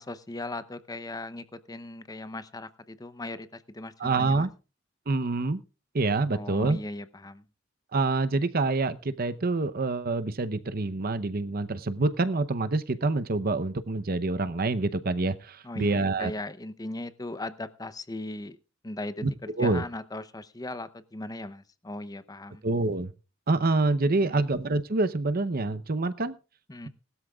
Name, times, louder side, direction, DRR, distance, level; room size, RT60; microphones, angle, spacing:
voice 1, 0.0-4.5 6.3-7.4 15.6-18.6 18.8-22.6 24.2-24.4 26.7-26.9, left 2 dB, 20° left, 13 dB, 0.7 m, -38 dB
voice 2, 4.0-4.5 5.1-5.6 5.9-6.8 7.9-16.3 19.2-19.3 19.6-19.8 22.6-23.1 23.5-26.3, right 3 dB, 50° right, 14 dB, 0.8 m, -26 dB
19.5 x 13.0 x 2.4 m, 0.31 s
head